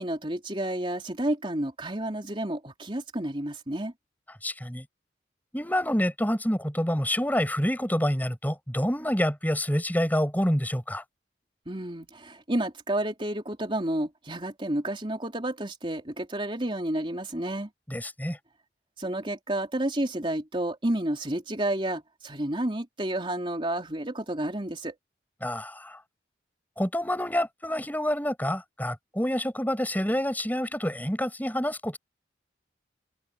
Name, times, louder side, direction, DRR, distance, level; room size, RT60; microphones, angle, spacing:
voice 1, 0.0-3.9 11.7-17.7 19.0-25.0, right 1 dB, 30° right, 3.6 m, -30 dB
voice 2, 4.4-4.8 5.5-11.0 17.9-18.4 25.4-26.0 26.8-32.0, equal, 10° left, 7.8 m, -27 dB
head